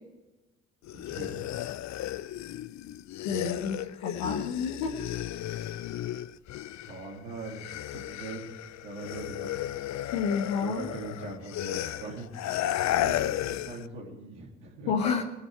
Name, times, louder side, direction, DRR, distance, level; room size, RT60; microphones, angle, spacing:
sound 1, 0.8-7.1 7.3-13.9, left 13 dB, 55° left, 0.6 m, -34 dB
voice 1, 0.9-1.4 6.9-7.6 7.9-8.5 8.8-9.6 10.5-12.3 12.7-15.0, right 3 dB, 80° right, -2 dB, 3.1 m, -41 dB
voice 2, 3.2-4.9 10.1-10.9 14.9-15.2, left 6 dB, 80° left, -1 dB, 1.4 m, -29 dB
22.0 x 8.2 x 4.9 m, 1.1 s
hypercardioid pair, 45°, 34 cm